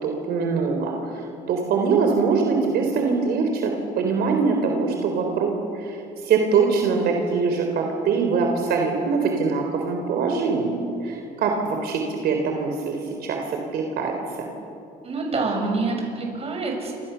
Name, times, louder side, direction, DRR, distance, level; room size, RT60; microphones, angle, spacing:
voice 1, 0.0-1.2 1.5-3.7 4.0-13.4 13.7-14.1, right 5 dB, 70° right, 2 dB, 3.9 m, -23 dB
voice 2, 15.0-16.9, right 3 dB, 35° right, 2 dB, 7.1 m, -26 dB
29.0 x 26.5 x 7.1 m, 2.6 s
cardioid pair, 110°, 17 cm